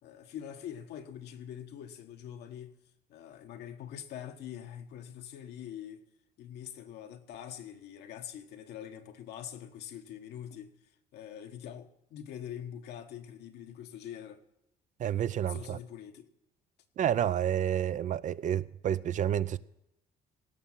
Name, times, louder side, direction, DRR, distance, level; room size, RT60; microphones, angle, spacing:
voice 1, 0.0-2.8 3.1-6.0 6.4-10.7 11.1-14.4 15.4-16.3, left 10 dB, 75° left, 1.4 m, -44 dB
voice 2, 15.0-15.8 17.0-19.6, right 10 dB, 50° right, 0.5 m, -29 dB
17.5 x 6.4 x 7.4 m
cardioid pair, 110°, 17 cm